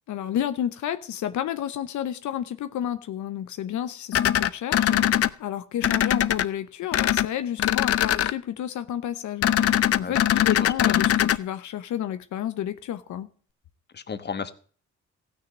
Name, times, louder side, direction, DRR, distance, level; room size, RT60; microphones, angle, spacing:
voice 1, 0.1-13.3, left 10 dB, 75° left, 0.9 m, -31 dB
sound 1, 4.1-5.3 5.8-6.4 6.9-7.3 7.6-8.3 9.4-11.4, left 11 dB, 50° left, 0.6 m, -21 dB
voice 2, 10.0-11.0 13.9-14.5, left 6 dB, 35° left, 1.2 m, -35 dB
15.0 x 6.6 x 7.2 m
cardioid pair, 90°, 30 cm